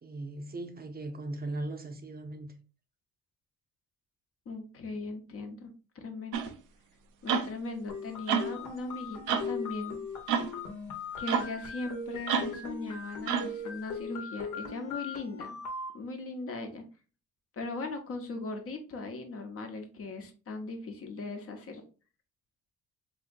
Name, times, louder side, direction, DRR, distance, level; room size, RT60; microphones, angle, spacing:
voice 1, 0.0-2.5, right 2 dB, 30° right, 0.6 m, -38 dB
voice 2, 4.5-6.4 7.2-10.0 11.2-15.6 15.9-16.8 17.5-21.8, left 3 dB, 50° left, 0.8 m, -39 dB
sound 1, 6.3-6.5 7.3-7.5 8.3-8.5 9.3-9.5 10.3-10.5 11.3-11.5 12.3-12.6 13.3-13.6, right 7 dB, 85° right, 0.5 m, -29 dB
sound 2, 7.9-15.9, left 4 dB, 75° left, 1.0 m, -39 dB
3.6 x 2.8 x 2.5 m
cardioid pair, 90°, 30 cm